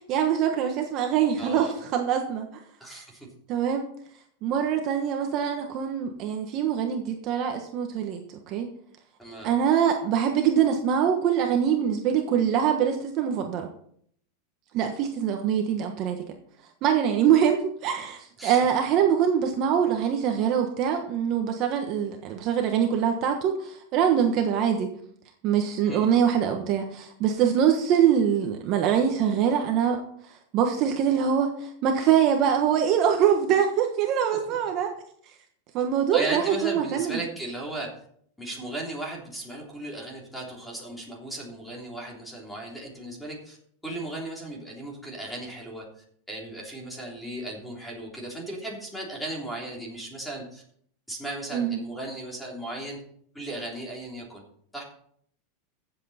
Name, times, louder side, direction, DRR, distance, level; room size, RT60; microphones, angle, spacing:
voice 1, 0.0-2.6 3.5-3.9 4.4-8.7 9.4-13.7 14.7-16.2 16.8-24.9 25.4-30.0 30.5-34.9 35.7-37.2 51.5-51.8, right 8 dB, 40° right, 4 dB, 1.3 m, -24 dB
voice 2, 1.4-1.7 2.8-3.3 9.2-9.5 18.4-18.7 25.9-26.1 36.1-37.9 38.4-43.6 43.8-45.8 46.3-50.6 51.1-53.0 53.3-54.4 54.7-54.8, right 1 dB, 5° left, -2 dB, 3.4 m, -36 dB
15.0 x 7.9 x 4.3 m, 0.63 s
supercardioid pair, 155°, 0 cm